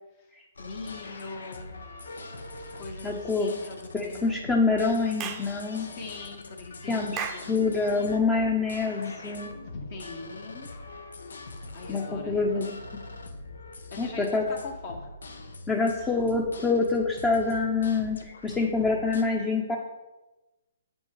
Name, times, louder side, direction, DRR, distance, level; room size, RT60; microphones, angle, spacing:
sound 1, 0.6-19.2, left 2 dB, 80° left, 0.9 m, -43 dB
voice 1, 0.6-1.8 2.7-4.3 5.7-7.6 9.7-10.7 11.7-12.7 13.9-15.1 16.0-16.2, left 3 dB, 45° left, 1 dB, 1.4 m, -42 dB
voice 2, 3.0-3.5 3.9-5.9 6.9-9.5 11.9-12.8 14.0-14.5 15.7-19.8, left 4 dB, 15° left, 0 dB, 0.8 m, -26 dB
Clapping / Chirp tweet, 5.2-5.5 7.2-7.5, right 7 dB, 25° right, 0.7 m, -33 dB
7.8 x 5.4 x 4.8 m, 1.1 s
hypercardioid pair, 140°, 0 cm